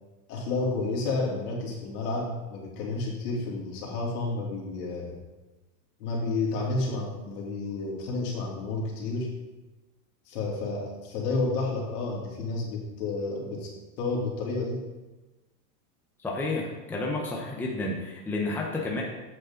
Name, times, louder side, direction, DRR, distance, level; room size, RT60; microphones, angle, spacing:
voice 1, 0.3-5.2 6.0-9.3 10.3-13.7 14.0-14.8, left 3 dB, 70° left, -3 dB, 3.0 m, -30 dB
voice 2, 16.2-19.0, left 2 dB, 5° left, -2 dB, 0.8 m, -31 dB
8.4 x 7.6 x 3.8 m, 1.1 s
supercardioid pair, 150°, 47 cm